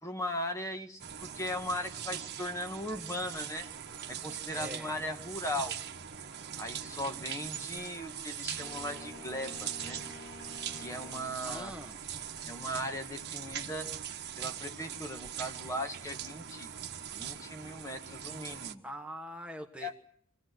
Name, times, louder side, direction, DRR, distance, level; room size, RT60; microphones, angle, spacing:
voice 1, 0.0-3.7 4.1-5.8 6.6-10.0 10.7-11.7 12.5-13.9 14.4-16.7 17.1-18.8 19.8-20.0, left 1 dB, 15° left, 5 dB, 1.4 m, -38 dB
sound 1, 1.0-18.7, right 9 dB, 50° right, 1.3 m, -41 dB
voice 2, 4.5-4.9 11.5-12.0 18.8-20.0, equal, 5° right, 3 dB, 1.3 m, -43 dB
sound 2, 8.6-11.4, left 3 dB, 50° left, 3.1 m, -49 dB
24.5 x 17.0 x 7.9 m, 0.66 s
head